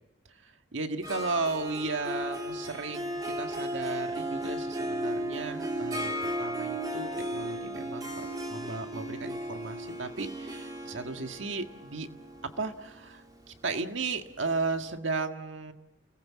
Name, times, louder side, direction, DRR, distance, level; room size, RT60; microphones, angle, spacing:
voice 1, 0.4-6.1 6.4-12.1 12.4-15.7, right 3 dB, 70° right, 6 dB, 1.8 m, -35 dB
Harp, 1.0-14.6, right 1 dB, 20° right, 3.2 m, -35 dB
29.0 x 19.5 x 7.5 m, 0.96 s
head